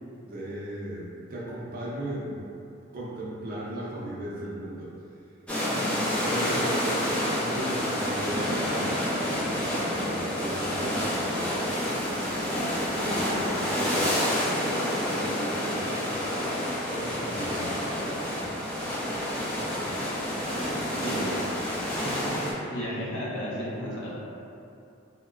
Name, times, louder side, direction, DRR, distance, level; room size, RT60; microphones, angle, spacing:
voice 1, 0.2-2.5 2.9-4.9 5.9-11.8 12.5-16.2 16.9-18.4 19.5-20.0 20.5-22.7, right 1 dB, 50° right, -6 dB, 0.5 m, -38 dB
sound 1, 5.5-22.5, left 1 dB, 5° left, 0.5 m, -28 dB
voice 2, 5.7-6.0 21.0-21.4 22.7-24.1, equal, 65° left, -6 dB, 0.6 m, -33 dB
2.9 x 2.1 x 2.4 m, 2.7 s
head